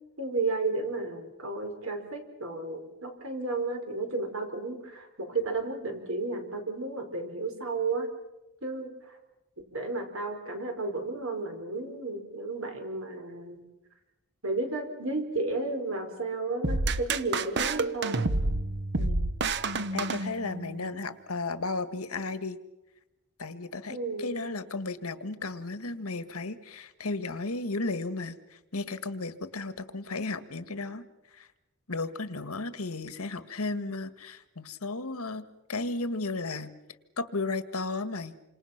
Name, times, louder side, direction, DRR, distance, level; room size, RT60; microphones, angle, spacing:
voice 1, 0.2-8.1 8.6-9.1 9.7-13.6 14.4-18.3 23.9-24.5, right 3 dB, 70° right, 4 dB, 5.1 m, -33 dB
sound 1, 16.6-20.8, right 3 dB, 50° right, 1.0 m, -29 dB
voice 2, 19.0-19.3 19.9-22.6 23.4-31.0 31.3-31.5 31.9-35.4 35.7-36.7 37.2-38.3, left 3 dB, 85° left, 11 dB, 1.7 m, -34 dB
29.0 x 26.5 x 5.9 m, 1.0 s
head